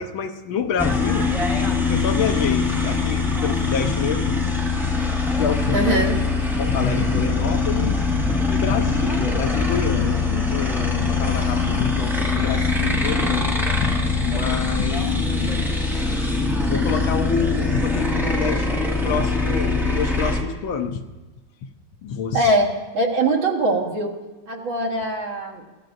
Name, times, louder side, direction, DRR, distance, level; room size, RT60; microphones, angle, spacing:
voice 1, 0.0-1.3 1.9-4.4 4.8-5.0 5.4-6.0 6.5-8.0 8.5-16.2 16.5-21.0 22.0-22.4, left 6 dB, 75° left, 6 dB, 1.5 m, -27 dB
sound 1, 0.8-20.4, left 3 dB, ahead, 1.4 m, -22 dB
voice 2, 5.7-6.2 22.3-22.7 22.9-24.1 24.5-25.6, right 1 dB, 65° right, 0 dB, 2.5 m, -21 dB
23.5 x 15.0 x 2.6 m, 1.2 s
omnidirectional pair, 2.3 m